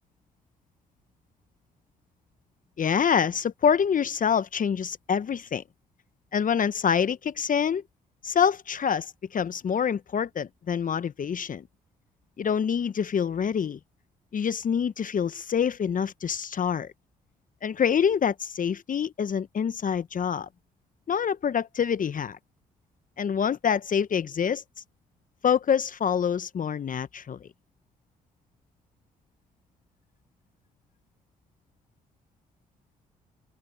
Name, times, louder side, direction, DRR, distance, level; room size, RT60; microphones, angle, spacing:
voice 1, 2.8-5.6 6.3-7.8 8.2-11.6 12.4-13.8 14.3-16.9 17.6-20.5 21.1-22.4 23.2-24.6 25.4-27.5, left 7 dB, 50° left, 1.0 m, -26 dB
open air
hypercardioid pair, 50°, 18 cm